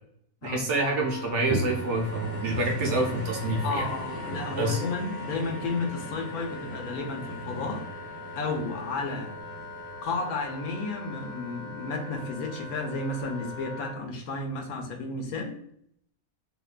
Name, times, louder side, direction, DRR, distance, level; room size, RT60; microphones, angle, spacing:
voice 1, 0.4-3.9 4.6-4.8, right 2 dB, 65° right, 0 dB, 0.8 m, -27 dB
Wind instrument woodwind instrument, 0.7-14.0, left 3 dB, 55° left, 0.8 m, -42 dB
sound 1, 1.5-12.0 12.6-12.7, right 1 dB, 35° right, 0.5 m, -38 dB
voice 2, 3.6-9.4 10.0-15.6, left 3 dB, 80° left, 3 dB, 1.1 m, -32 dB
2.8 x 2.2 x 2.4 m, 0.68 s
omnidirectional pair, 1.5 m